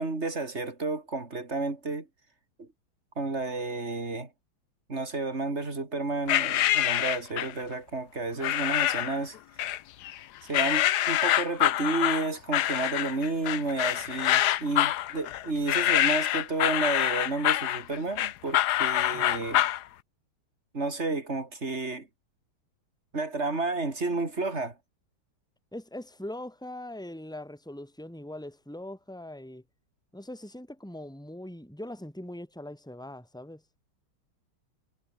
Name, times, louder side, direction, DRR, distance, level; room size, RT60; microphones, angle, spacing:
voice 1, 0.0-2.1 2.6-2.7 3.2-4.3 4.9-9.4 10.5-19.7 20.7-22.1 23.1-24.8, right 3 dB, 30° right, 3.9 m, -31 dB
sound 1, 6.3-7.6 8.4-9.2 9.6-10.2 10.5-19.8, left 13 dB, 65° left, 1.0 m, -26 dB
voice 2, 25.7-29.6 30.1-33.6, left 1 dB, ahead, 5.4 m, -41 dB
omnidirectional pair, 2.4 m